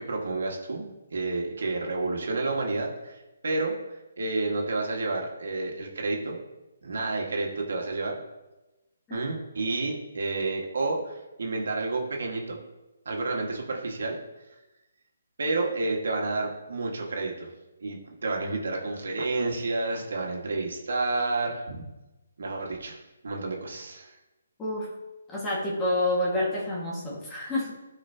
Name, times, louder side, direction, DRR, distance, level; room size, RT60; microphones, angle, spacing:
voice 1, 0.0-3.7 4.2-6.4 6.8-8.1 9.1-12.6 13.1-14.2 15.4-17.5 17.8-21.8 22.4-24.2, right 3 dB, 70° right, 0 dB, 1.9 m, -30 dB
voice 2, 24.6-24.9 25.3-27.7, left 1 dB, 15° left, -5 dB, 1.9 m, -28 dB
13.0 x 4.9 x 2.9 m, 1.0 s
hypercardioid pair, 155°, 0 cm